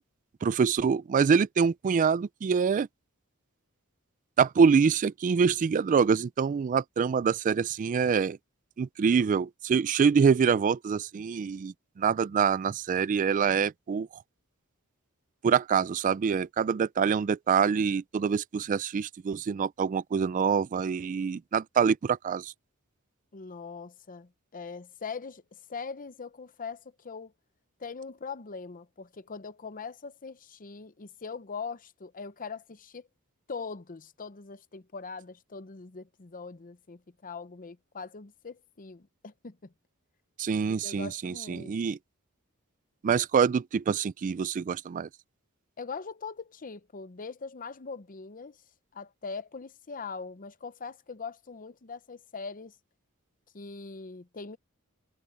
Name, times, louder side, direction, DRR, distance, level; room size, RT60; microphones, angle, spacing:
voice 1, 0.4-2.9 4.4-8.4 8.8-14.2 15.4-22.5 40.4-42.0 43.0-45.1, right 6 dB, 35° right, 0.3 m, -25 dB
voice 2, 23.3-27.3 27.8-33.1 33.5-39.7 40.7-41.7 45.8-48.6 48.9-52.8 53.5-54.6, left 5 dB, 40° left, 0.8 m, -41 dB
head